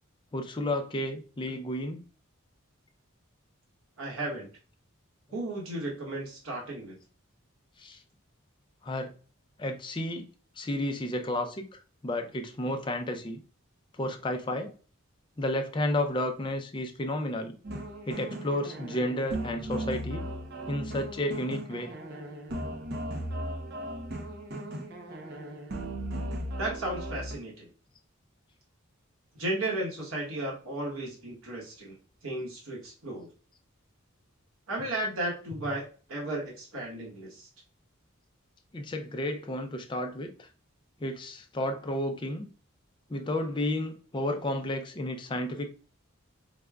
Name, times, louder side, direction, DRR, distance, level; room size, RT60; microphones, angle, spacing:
voice 1, 0.3-2.0 7.8-8.0 8.8-9.1 9.6-10.3 10.6-13.4 14.0-14.7 15.4-17.6 18.1-20.2 20.7-21.9 38.7-40.5 41.0-42.5 43.1-45.7, left 1 dB, 20° left, 0.4 m, -32 dB
voice 2, 4.0-4.5 5.3-7.0 26.6-27.7 29.3-32.0 32.2-33.3 34.7-35.8 36.1-37.5, right 1 dB, 75° right, 1.1 m, -34 dB
sound 1, 17.6-27.4, right 1 dB, 45° right, 0.6 m, -37 dB
4.9 x 2.2 x 2.2 m
head